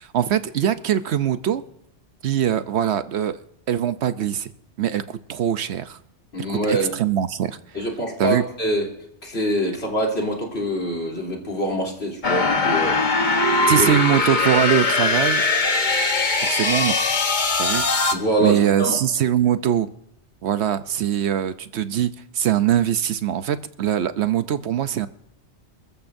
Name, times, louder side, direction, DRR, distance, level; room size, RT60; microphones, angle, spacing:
voice 1, 0.0-1.6 2.2-3.4 3.7-4.5 4.8-6.0 6.7-7.6 8.2-8.4 13.7-15.4 16.4-16.9 17.6-17.8 18.4-19.9 20.4-25.1, right 10 dB, 70° right, 12 dB, 1.0 m, -22 dB
voice 2, 6.3-6.9 7.7-8.9 9.2-13.0 13.8-13.9 18.1-19.0, right 1 dB, 65° left, 0 dB, 3.6 m, -24 dB
sound 1, 12.2-18.2, left 3 dB, 45° left, 1.3 m, -20 dB
28.5 x 14.0 x 2.6 m, 0.79 s
omnidirectional pair, 1.2 m